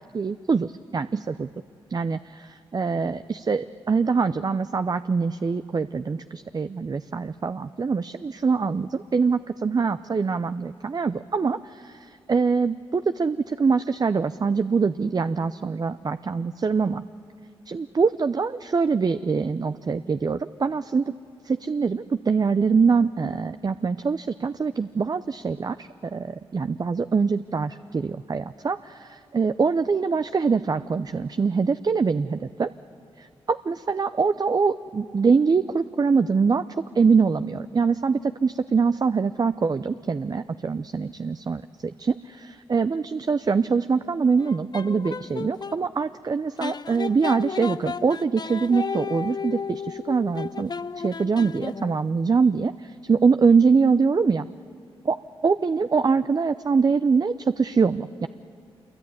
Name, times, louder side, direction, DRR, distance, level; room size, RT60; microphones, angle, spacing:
voice 1, 0.1-1.5 1.9-2.5 2.7-17.0 17.7-21.2 21.4-32.7 33.2-54.5 55.0-55.2 55.4-58.3, right 5 dB, 40° right, 11 dB, 0.6 m, -24 dB
sound 1, 44.4-45.8 46.6-52.1, left 5 dB, 40° left, 0.6 m, -33 dB
26.0 x 22.5 x 9.5 m, 2.3 s
cardioid pair, 55°, 10 cm